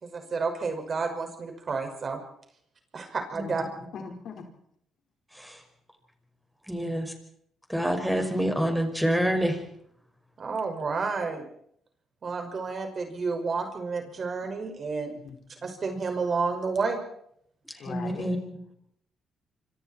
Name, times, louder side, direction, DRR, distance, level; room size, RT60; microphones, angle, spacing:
voice 1, 0.0-2.2 2.9-3.6 6.7-6.9 10.4-11.5 12.2-15.1 15.6-17.0, right 4 dB, 45° right, 5 dB, 5.7 m, -30 dB
voice 2, 3.4-4.4 15.2-15.7 17.8-18.3, left 6 dB, 65° left, 3 dB, 4.8 m, -41 dB
voice 3, 6.7-7.1 7.7-9.6 17.8-18.6, equal, ahead, 5 dB, 5.7 m, -27 dB
26.5 x 26.0 x 4.5 m, 0.70 s
cardioid pair, 90°, 0 cm